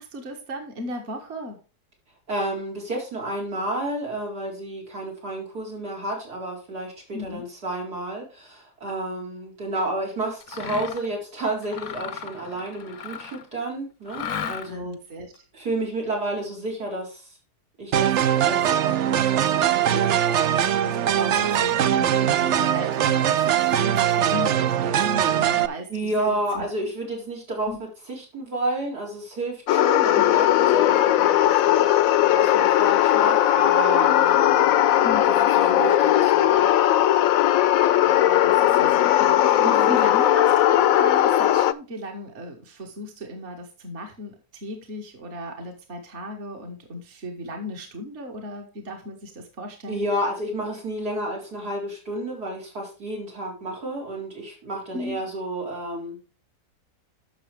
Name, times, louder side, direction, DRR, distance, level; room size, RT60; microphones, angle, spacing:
voice 1, 0.0-1.6 7.1-7.4 14.6-15.4 20.8-26.6 27.7-27.8 30.2-30.3 35.0-35.5 38.0-50.0 54.9-55.2, left 1 dB, 45° right, 3 dB, 1.8 m, -36 dB
voice 2, 2.3-15.0 15.5-17.3 17.8-20.2 25.9-27.7 28.1-36.7 39.6-40.0 49.9-56.2, right 1 dB, 85° right, -2 dB, 4.9 m, -31 dB
Mechanisms, 10.4-11.1 11.6-13.5 14.1-14.9, left 7 dB, 90° left, 1.6 m, -35 dB
sound 1, 17.9-25.7, right 10 dB, 65° right, 0.8 m, -21 dB
sound 2, 29.7-41.7, left 12 dB, 70° left, 1.0 m, -18 dB
11.0 x 6.6 x 3.4 m, 0.34 s
omnidirectional pair, 1.7 m